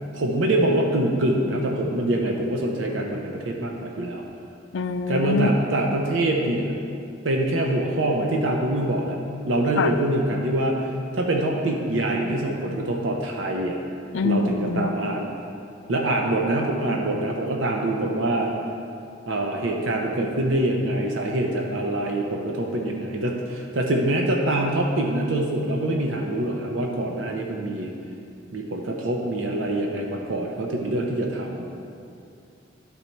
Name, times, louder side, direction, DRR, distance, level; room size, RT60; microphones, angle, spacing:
voice 1, 0.1-4.2 5.1-6.8 7.2-9.2 9.5-13.8 14.2-15.3 15.9-18.5 19.3-27.9 28.5-31.7, right 1 dB, 75° right, 1 dB, 0.7 m, -25 dB
voice 2, 4.7-5.5 9.8-9.9 14.1-14.9, left 4 dB, 70° left, 8 dB, 0.4 m, -24 dB
11.5 x 4.1 x 4.4 m, 2.5 s
head